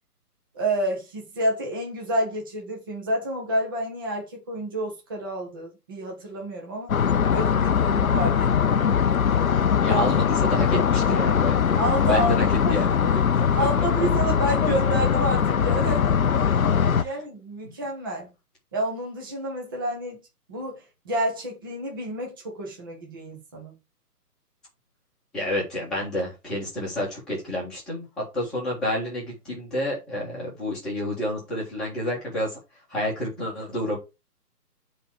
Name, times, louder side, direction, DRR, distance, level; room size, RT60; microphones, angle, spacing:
voice 1, 0.5-6.9 7.3-9.2 9.9-10.0 11.8-12.8 13.5-16.6 16.9-18.3 18.7-20.2 20.5-23.8, right 1 dB, 15° right, 1.3 m, -29 dB
sound 1, 6.9-17.0, left 7 dB, 60° left, 0.8 m, -21 dB
voice 2, 9.8-11.7 12.0-13.5 16.9-17.2 17.6-17.7 25.3-32.6 32.9-34.0, left 1 dB, ahead, 1.9 m, -29 dB
8.9 x 4.2 x 4.9 m
hypercardioid pair, 175°, 48 cm